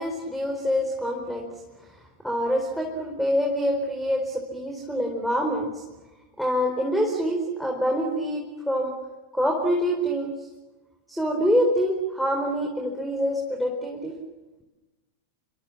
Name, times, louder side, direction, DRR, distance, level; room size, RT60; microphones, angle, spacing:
voice 1, 0.0-1.5 1.9-2.0 2.2-5.8 6.4-8.9 9.3-10.5 11.1-14.1, equal, ahead, 2 dB, 4.5 m, -26 dB
30.0 x 26.0 x 7.4 m, 1.2 s
figure-of-eight pair, 90°, 0 cm